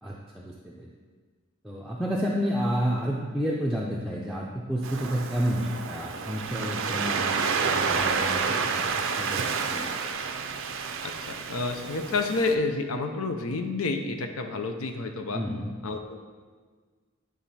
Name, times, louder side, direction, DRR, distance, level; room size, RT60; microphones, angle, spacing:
voice 1, 0.0-0.9 1.6-8.8 9.2-9.4 9.7-9.9 15.3-15.7, equal, ahead, -4 dB, 0.5 m, -30 dB
Waves surf, 4.8-12.5, right 5 dB, 65° right, 0.5 m, -29 dB
voice 2, 11.5-15.4 15.8-16.2, left 3 dB, 85° left, 5 dB, 0.7 m, -29 dB
9.5 x 3.5 x 4.2 m, 1.5 s
head